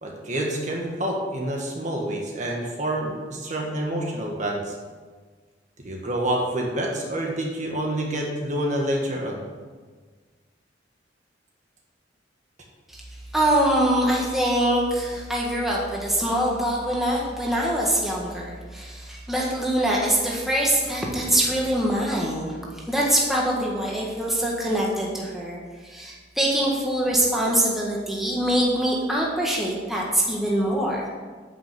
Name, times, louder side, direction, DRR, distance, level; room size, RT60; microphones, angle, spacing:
voice 1, 0.0-4.7 5.8-9.4, right 1 dB, 40° right, 0 dB, 1.6 m, -27 dB
voice 2, 13.3-22.6 22.9-31.0, right 1 dB, ahead, -4 dB, 1.6 m, -24 dB
9.1 x 6.0 x 7.0 m, 1.4 s
head